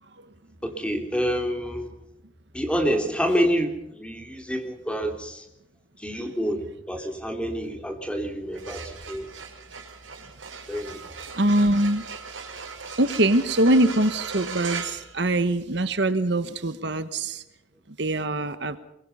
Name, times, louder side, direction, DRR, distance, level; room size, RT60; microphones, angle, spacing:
voice 1, 0.6-1.9 2.5-5.5 6.0-9.3 10.7-11.0, equal, 5° left, 4 dB, 3.4 m, -27 dB
sound 1, 8.4-15.9, right 5 dB, 75° right, 4.5 m, -38 dB
voice 2, 11.3-12.1 13.0-17.4 18.0-18.8, right 1 dB, 60° right, 11 dB, 1.2 m, -23 dB
24.0 x 22.0 x 5.5 m, 0.85 s
head